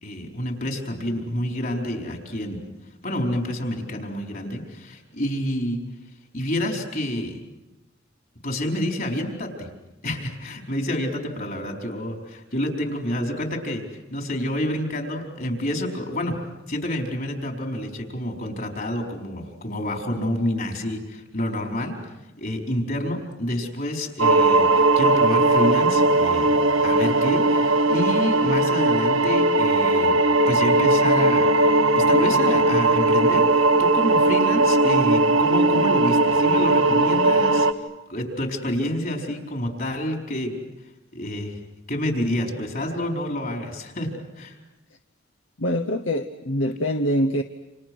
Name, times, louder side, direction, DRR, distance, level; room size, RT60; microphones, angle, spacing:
voice 1, 0.0-2.6 3.0-5.8 6.3-7.4 8.4-9.7 10.0-13.8 14.1-16.4 16.7-22.0 22.4-26.5 26.8-30.1 30.5-37.7 38.1-40.6 41.1-41.6 41.9-44.1 44.4-44.6, left 1 dB, 50° left, 4.6 m, -28 dB
sound 1, 24.2-37.7, right 2 dB, 85° right, 1.2 m, -19 dB
voice 2, 45.6-47.4, equal, 70° left, 1.1 m, -24 dB
29.5 x 27.5 x 6.3 m
head